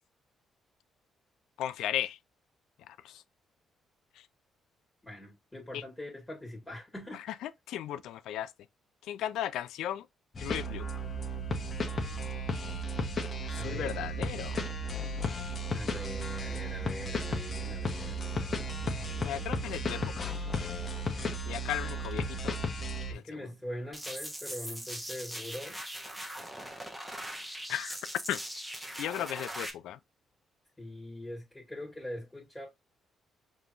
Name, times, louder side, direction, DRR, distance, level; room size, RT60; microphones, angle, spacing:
voice 1, 1.6-2.2 3.0-3.1 5.7-5.8 7.1-8.5 9.1-10.0 10.4-10.9 13.5-14.6 19.2-20.3 21.5-22.6 23.1-23.4 27.7-28.0 28.3-28.4 29.0-30.0, left 11 dB, 85° left, 0.3 m, -36 dB
voice 2, 5.0-7.2 13.6-14.0 15.7-19.5 23.1-25.8 30.8-32.7, left 1 dB, 10° left, 1.9 m, -42 dB
sound 1, 10.3-23.1, equal, 40° left, 1.0 m, -34 dB
sound 2, 23.9-29.7, equal, 10° right, 1.1 m, -40 dB
5.2 x 3.0 x 2.5 m
cardioid pair, 90°, 0 cm